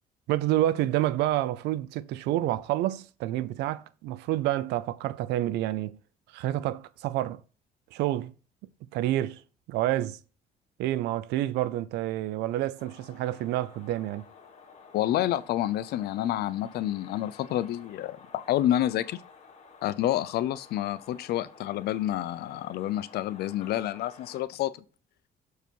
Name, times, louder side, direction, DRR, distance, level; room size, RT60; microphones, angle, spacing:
voice 1, 0.3-6.0 6.3-7.4 7.9-8.3 8.9-9.4 9.7-10.2 10.8-14.2, right 14 dB, 85° right, 0.5 m, -28 dB
sound 1, 12.8-24.4, left 5 dB, 45° left, 1.5 m, -52 dB
voice 2, 14.9-19.2 19.8-24.7, left 13 dB, 70° left, 0.6 m, -29 dB
6.8 x 4.8 x 4.5 m
cardioid pair, 110°, 17 cm